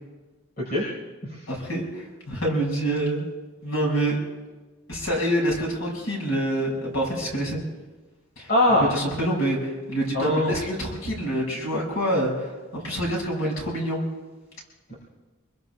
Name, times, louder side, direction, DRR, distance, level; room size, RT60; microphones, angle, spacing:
voice 1, 0.6-0.9 1.2-1.4 8.5-8.9 10.1-10.5 14.9-15.0, left 1 dB, 45° left, -5 dB, 4.7 m, -22 dB
voice 2, 1.5-3.3 3.6-4.2 4.9-7.6 8.4-8.5 8.9-14.0, right 1 dB, 85° left, -2 dB, 5.9 m, -26 dB
28.5 x 22.0 x 2.3 m, 1.2 s
head